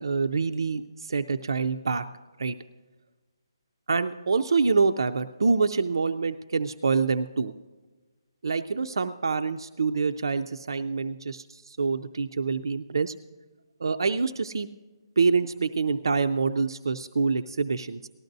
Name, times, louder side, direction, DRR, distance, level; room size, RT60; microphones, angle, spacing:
voice 1, 0.0-2.0 2.4-2.6 3.9-7.5 8.4-13.1 13.8-14.7 15.2-18.1, right 4 dB, 60° right, 9 dB, 0.4 m, -26 dB
18.5 x 13.0 x 2.6 m, 1.3 s
hypercardioid pair, 180°, 3 cm